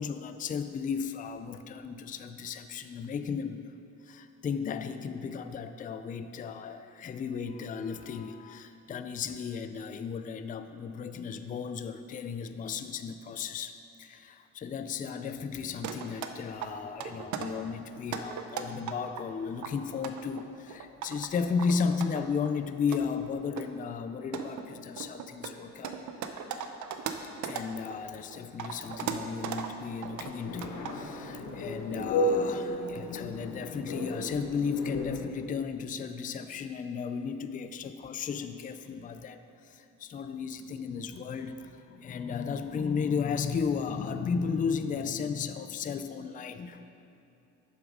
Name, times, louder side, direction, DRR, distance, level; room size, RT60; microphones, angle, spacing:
voice 1, 0.0-3.6 4.0-26.0 27.4-46.8, left 6 dB, 30° left, 9 dB, 0.4 m, -34 dB
sound 1, 15.8-16.3 16.6-17.5 18.0-19.2 19.6-21.3 21.6-22.5 22.9-23.0 23.6-23.7 24.1-28.0 28.3-29.7 30.0-30.3 30.6-31.0, right 8 dB, 75° right, 0.6 m, -37 dB
sound 2, 30.0-35.2, left 1 dB, 80° left, 1.1 m, -33 dB
7.3 x 7.0 x 4.8 m, 2.7 s
cardioid pair, 90°, 30 cm